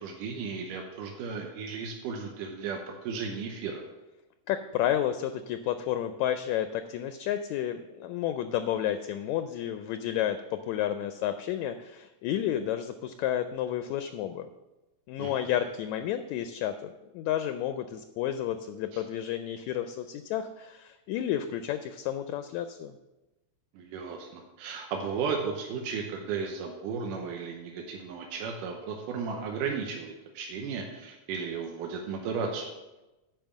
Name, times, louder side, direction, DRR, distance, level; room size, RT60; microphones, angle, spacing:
voice 1, 0.0-3.8 15.2-15.6 18.9-19.0 23.7-32.7, right 5 dB, 85° right, 1 dB, 2.5 m, -35 dB
voice 2, 4.5-14.5 15.1-22.9, left 11 dB, 80° left, 9 dB, 1.7 m, -31 dB
9.1 x 5.2 x 7.1 m, 1.0 s
omnidirectional pair, 3.6 m